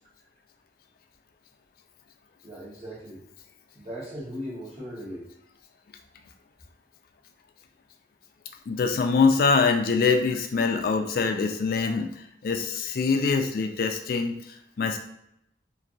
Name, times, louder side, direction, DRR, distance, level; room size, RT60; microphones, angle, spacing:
voice 1, 2.4-3.2 3.7-5.3, equal, 35° right, -8 dB, 1.1 m, -38 dB
voice 2, 8.7-12.1 12.4-15.0, left 4 dB, 50° left, 5 dB, 0.3 m, -24 dB
2.9 x 2.5 x 2.6 m, 0.76 s
head